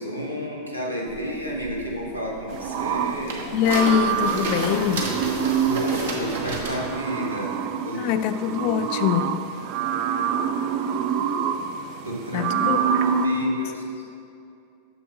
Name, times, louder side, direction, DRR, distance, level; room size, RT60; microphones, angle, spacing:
voice 1, 0.0-3.5 5.6-7.6 7.8-8.2 8.5-8.9 12.0-12.5 13.2-13.8, equal, 90° right, -3 dB, 1.3 m, -31 dB
sound 1, 1.1-6.9, right 3 dB, 60° right, 1.2 m, -30 dB
sound 2, 2.5-13.3, right 8 dB, 45° right, 0.4 m, -27 dB
voice 2, 3.5-5.2 7.9-9.4 12.3-12.8, left 9 dB, 45° left, 12 dB, 0.3 m, -23 dB
7.0 x 6.7 x 5.2 m, 2.6 s
figure-of-eight pair, 90°, 0 cm